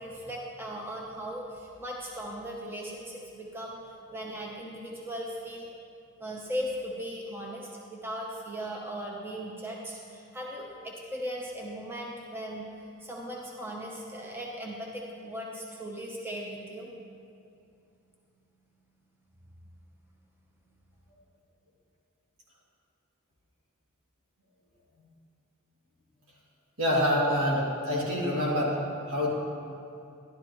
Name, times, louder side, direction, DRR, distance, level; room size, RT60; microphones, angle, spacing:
voice 1, 0.0-5.7 6.2-16.9, equal, 10° right, -2 dB, 0.9 m, -38 dB
voice 2, 26.8-28.7 29.1-29.3, equal, 80° right, -5 dB, 2.6 m, -26 dB
12.5 x 12.0 x 3.1 m, 2.6 s
head